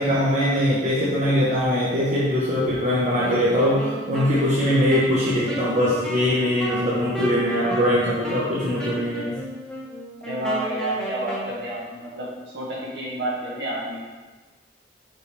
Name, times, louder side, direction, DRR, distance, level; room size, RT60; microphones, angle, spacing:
voice 1, 0.0-9.4, equal, 35° right, -9 dB, 1.2 m, -22 dB
Wind instrument woodwind instrument, 3.2-11.5, right 1 dB, 5° left, 1.0 m, -33 dB
voice 2, 10.2-14.0, right 1 dB, 60° right, -6 dB, 1.9 m, -29 dB
5.8 x 5.4 x 3.4 m, 1.3 s
head